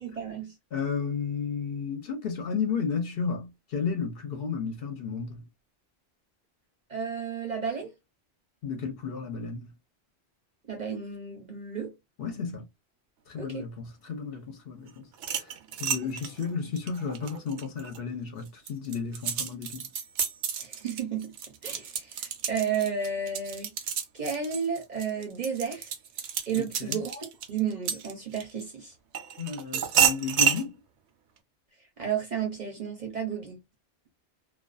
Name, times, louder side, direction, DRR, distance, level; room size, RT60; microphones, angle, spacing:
voice 1, 0.0-0.5 6.9-7.9 10.7-11.9 13.4-13.7 20.6-21.3 21.6-23.7 24.1-25.9 26.5-28.9 32.0-33.6, right 6 dB, 45° right, 0.7 m, -32 dB
voice 2, 0.7-5.5 8.6-9.7 12.2-12.7 13.3-14.9 15.3-15.5 15.8-19.9 26.6-27.0 29.4-30.8, left 6 dB, 60° left, 0.7 m, -33 dB
sound 1, 15.1-18.0 18.5-28.6 29.1-30.6, right 8 dB, 75° right, 0.8 m, -30 dB
2.3 x 2.2 x 2.4 m
omnidirectional pair, 1.2 m